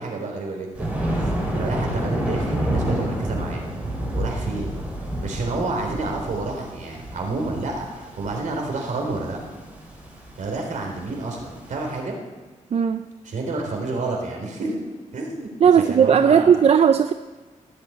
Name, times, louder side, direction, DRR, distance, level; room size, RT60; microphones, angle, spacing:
voice 1, 0.0-3.6 4.1-4.8 5.2-9.4 10.4-12.2 13.2-14.8 15.1-16.6, right 3 dB, 75° right, 2 dB, 3.5 m, -29 dB
Thunder, 0.7-11.9, right 1 dB, 10° right, 5.2 m, -29 dB
voice 2, 12.7-13.1 15.6-17.1, right 7 dB, 50° right, 9 dB, 0.5 m, -16 dB
15.5 x 8.3 x 8.5 m, 1.3 s
wide cardioid pair, 140°, 13 cm